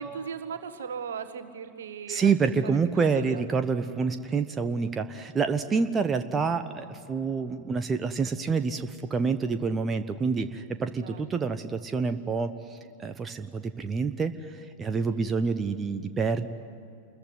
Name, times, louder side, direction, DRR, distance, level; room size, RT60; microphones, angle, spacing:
voice 1, 0.0-3.4 11.0-11.2 14.9-15.2, right 6 dB, 65° right, 8 dB, 1.6 m, -38 dB
voice 2, 2.1-16.5, right 5 dB, 20° right, 9 dB, 1.0 m, -27 dB
27.5 x 22.0 x 9.7 m, 2.6 s
figure-of-eight pair, 90°, 0 cm